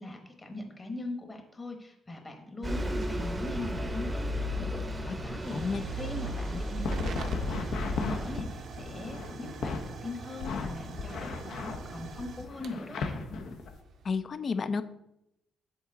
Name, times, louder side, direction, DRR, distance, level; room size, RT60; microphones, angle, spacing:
voice 1, 0.0-7.3 7.9-13.2, left 2 dB, 25° left, 4 dB, 1.1 m, -41 dB
Bus, 2.6-8.4, equal, 20° right, 0.6 m, -34 dB
Hiss / Fire / Tick, 4.8-14.2, right 4 dB, 60° right, 0.6 m, -46 dB
sound 1, 6.8-9.8 10.4-13.7, left 4 dB, 75° left, 0.7 m, -35 dB
voice 2, 14.0-14.8, left 5 dB, 45° left, 12 dB, 0.3 m, -31 dB
7.2 x 3.9 x 3.7 m, 0.86 s
cardioid pair, 90°, 0 cm